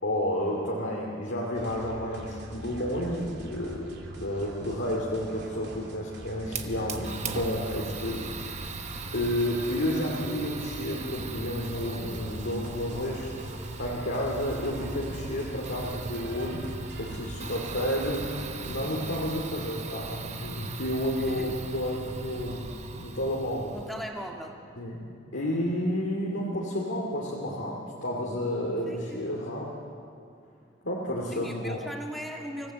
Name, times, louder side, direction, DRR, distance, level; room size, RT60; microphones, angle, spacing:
voice 1, 0.0-3.9 4.2-8.3 9.1-13.5 13.8-22.7 23.0-23.7 24.8-25.0 25.3-29.7 30.8-31.8, equal, 70° left, -4 dB, 2.6 m, -31 dB
sound 1, 1.5-19.3, right 1 dB, 60° right, 3.2 m, -43 dB
Fire, 6.5-24.1, right 3 dB, 35° right, 1.2 m, -39 dB
voice 2, 21.2-21.6 23.7-24.6 28.9-29.3 31.3-32.7, equal, ahead, 1 dB, 1.9 m, -39 dB
25.5 x 16.5 x 7.7 m, 2.4 s
head